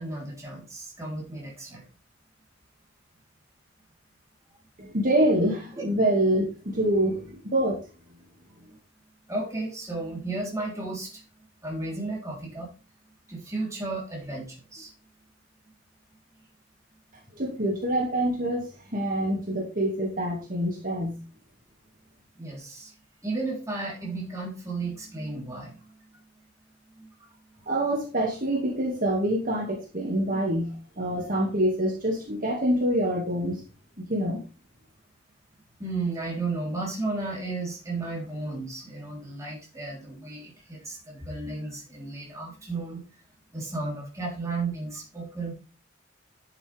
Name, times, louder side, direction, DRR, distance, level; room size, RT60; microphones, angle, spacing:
voice 1, 0.0-1.9 9.3-11.2 11.6-12.7 13.3-14.9 22.4-22.9 23.2-26.0 27.0-27.1 30.3-30.4 35.8-43.0 43.5-45.5, right 3 dB, 15° right, -3 dB, 3.7 m, -33 dB
voice 2, 4.8-7.8 17.3-21.2 27.7-33.6 34.0-34.4, right 1 dB, 45° right, -2 dB, 2.3 m, -26 dB
10.5 x 7.4 x 3.5 m, 0.32 s
head